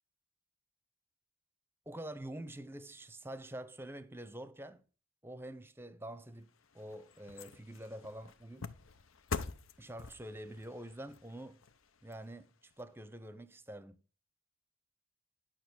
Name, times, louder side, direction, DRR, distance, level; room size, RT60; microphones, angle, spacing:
voice 1, 1.9-4.8 5.2-8.7 9.8-11.6 12.0-14.0, right 1 dB, 10° right, 0.7 m, -46 dB
sound 1, 6.3-12.8 13.3-13.4, left 4 dB, 75° left, 0.8 m, -46 dB
11.0 x 6.2 x 6.2 m
head